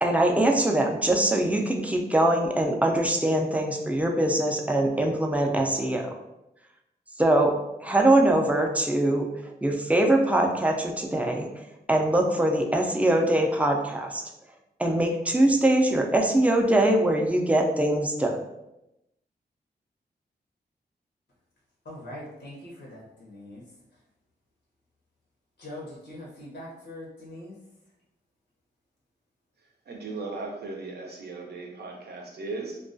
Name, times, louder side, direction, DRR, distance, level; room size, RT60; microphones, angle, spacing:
voice 1, 0.0-6.1 7.2-7.6 7.8-9.3 9.6-11.5 11.9-14.2 14.8-18.4, right 1 dB, 10° right, 1 dB, 0.4 m, -22 dB
voice 2, 21.8-23.6 25.6-27.5, left 1 dB, 85° left, -4 dB, 0.7 m, -42 dB
voice 3, 29.9-32.8, right 3 dB, 75° right, 0 dB, 0.5 m, -37 dB
2.2 x 2.2 x 2.5 m, 0.89 s
wide cardioid pair, 80°, 17 cm